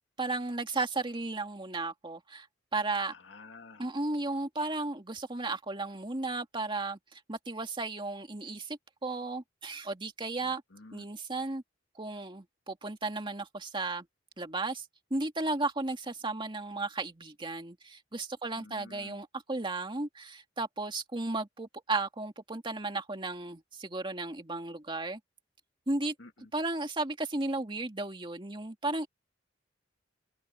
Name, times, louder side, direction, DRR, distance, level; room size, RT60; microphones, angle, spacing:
voice 1, 0.2-2.5 2.7-3.1 3.8-10.6 10.9-11.6 12.0-14.1 14.4-14.9 15.1-25.2 25.9-26.1 26.5-29.1, right 2 dB, 25° right, 2.3 m, -34 dB
voice 2, 2.9-3.9 10.4-11.1 18.6-19.2 26.2-26.5, left 3 dB, 70° left, 2.0 m, -51 dB
head